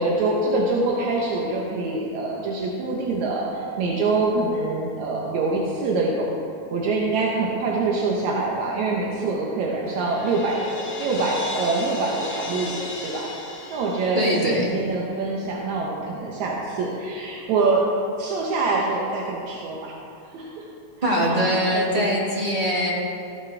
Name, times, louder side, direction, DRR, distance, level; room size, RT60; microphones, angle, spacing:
voice 1, 0.0-6.3 6.7-10.6 11.0-13.3 13.7-17.8 18.2-19.9 20.3-20.7 21.3-22.2, right 3 dB, 75° right, -3 dB, 2.2 m, -25 dB
Crash cymbal, 9.8-14.8, left 2 dB, 55° left, 1.0 m, -34 dB
voice 2, 14.1-14.7 21.0-22.9, equal, 25° right, -5 dB, 1.1 m, -22 dB
14.5 x 9.9 x 3.3 m, 2.7 s
omnidirectional pair, 3.3 m